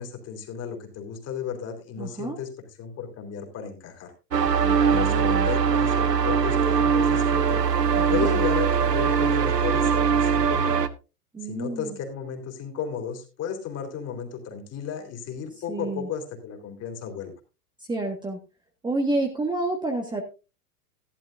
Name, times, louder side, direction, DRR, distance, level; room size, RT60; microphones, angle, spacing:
voice 1, 0.0-2.5 2.8-4.1 4.8-7.6 8.1-10.8 11.4-17.3, left 7 dB, 30° left, 4 dB, 3.4 m, -34 dB
voice 2, 2.0-2.4 4.6-5.5 8.0-8.3 11.3-12.0 15.7-16.1 17.9-18.4 18.8-20.2, right 2 dB, 10° right, 2 dB, 1.5 m, -29 dB
sound 1, 4.3-10.9, right 6 dB, 85° right, 0.9 m, -21 dB
14.5 x 12.0 x 2.6 m, 0.30 s
figure-of-eight pair, 95°, 47 cm